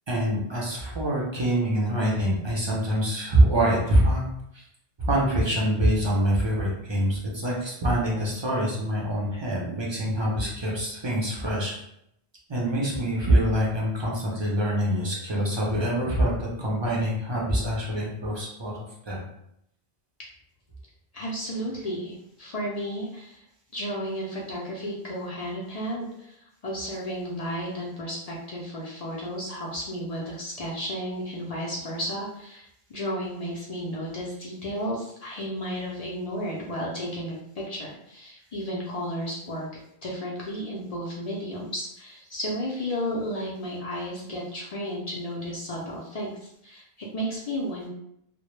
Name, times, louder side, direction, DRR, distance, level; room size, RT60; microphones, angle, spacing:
voice 1, 0.1-4.2 4.5-4.6 5.0-11.7 12.5-19.2, right 1 dB, 35° right, -4 dB, 0.5 m, -25 dB
voice 2, 21.1-23.4 23.7-26.4 26.6-39.7 40.0-47.9, equal, 55° left, -4 dB, 0.5 m, -33 dB
2.1 x 2.0 x 3.0 m, 0.76 s
omnidirectional pair, 1.1 m